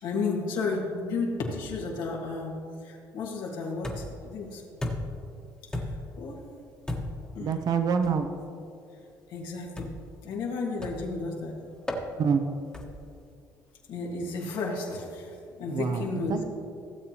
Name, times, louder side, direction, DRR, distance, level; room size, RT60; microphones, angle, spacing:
voice 1, 0.0-4.6 5.7-6.4 7.3-7.5 9.3-9.9 10.2-11.7 13.9-16.4, left 3 dB, 80° left, -2 dB, 1.9 m, -33 dB
sound 1, 3.8-4.3 4.8-5.3 5.7-6.2 6.9-7.3 8.0-8.2 9.8-10.1 10.8-11.2 11.9-12.1 12.7-13.1, left 1 dB, 10° left, 1.3 m, -34 dB
voice 2, 7.4-8.3 12.2-12.4 15.7-16.4, right 6 dB, 55° right, 7 dB, 0.8 m, -26 dB
16.0 x 7.3 x 3.0 m, 2.4 s
cardioid pair, 95°, 8 cm